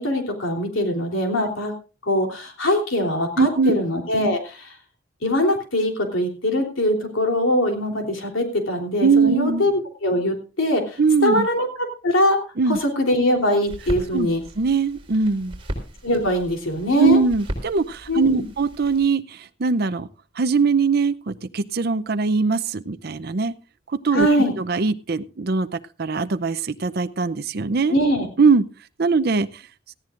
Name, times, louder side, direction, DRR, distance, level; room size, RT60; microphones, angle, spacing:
voice 1, 0.0-1.7 2.0-4.7 5.2-12.4 12.6-14.4 16.0-17.2 18.1-18.4 24.1-24.5 27.9-28.3, left 1 dB, 80° left, 3 dB, 3.4 m, -22 dB
voice 2, 3.4-3.8 9.0-9.6 11.0-11.5 12.6-12.8 14.1-14.3 14.6-15.6 17.0-20.1 20.4-23.5 23.9-25.7 26.0-28.0 28.4-28.6 29.0-29.6, right 4 dB, 50° right, 11 dB, 0.6 m, -21 dB
sound 1, 13.7-19.1, right 1 dB, 30° right, 3.8 m, -36 dB
18.0 x 14.5 x 2.5 m, 0.35 s
head